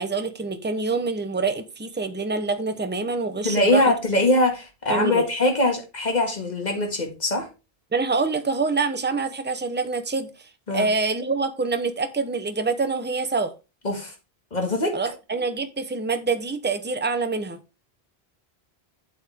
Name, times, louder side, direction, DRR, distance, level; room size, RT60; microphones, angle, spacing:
voice 1, 0.0-3.9 4.9-5.2 7.9-10.3 10.7-13.5 14.9-17.6, right 4 dB, 10° right, 0.8 m, -26 dB
voice 2, 3.4-7.5 10.7-10.9 13.8-14.1 14.5-15.0, left 1 dB, 45° left, 2.2 m, -22 dB
8.0 x 7.1 x 3.6 m
omnidirectional pair, 1.0 m